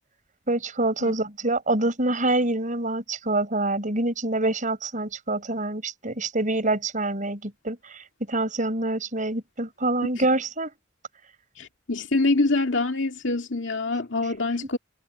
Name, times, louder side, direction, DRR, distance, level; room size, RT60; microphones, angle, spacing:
voice 1, 0.5-10.7, right 2 dB, 40° right, 6.6 m, -26 dB
voice 2, 11.6-14.8, left 2 dB, 65° left, 2.5 m, -25 dB
head